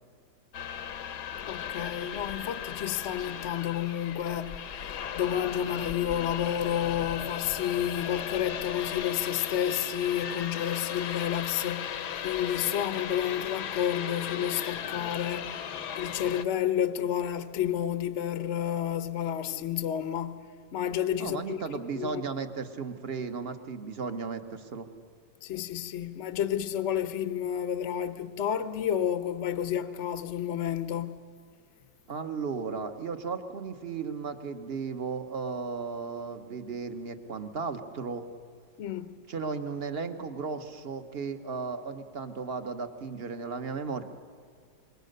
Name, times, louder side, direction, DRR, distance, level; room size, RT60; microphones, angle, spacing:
sound 1, 0.5-16.4, left 9 dB, 65° left, 1.4 m, -36 dB
voice 1, 1.5-20.4 20.7-21.6 21.9-22.2 25.4-31.2 38.8-39.1, left 10 dB, 50° left, 1.0 m, -30 dB
voice 2, 21.2-24.9 32.1-38.3 39.3-44.0, right 5 dB, 40° right, 1.2 m, -35 dB
26.0 x 22.0 x 6.7 m
omnidirectional pair, 2.0 m